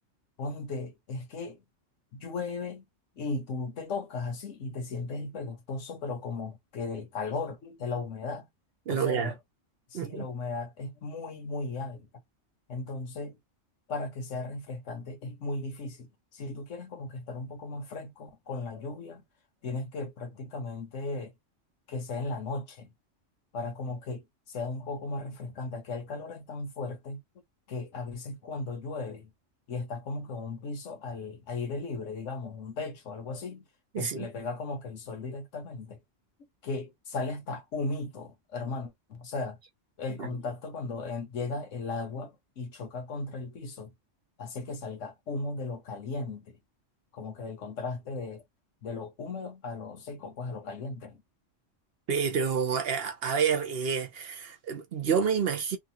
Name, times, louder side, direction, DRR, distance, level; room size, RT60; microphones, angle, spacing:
voice 1, 0.4-1.6 2.1-2.8 3.2-8.5 8.9-9.4 9.9-12.1 12.7-13.4 13.9-19.2 19.6-21.3 21.9-22.9 23.5-27.2 27.7-29.3 29.7-33.7 33.9-36.0 36.6-39.6 40.0-43.9 44.4-46.6 47.1-48.4 48.8-51.2, left 3 dB, 75° left, 1.3 m, -36 dB
voice 2, 8.9-9.3 9.9-10.3 33.9-34.3 40.1-40.3 52.1-55.8, right 6 dB, 60° right, 0.8 m, -29 dB
3.0 x 2.4 x 2.8 m
omnidirectional pair, 1.3 m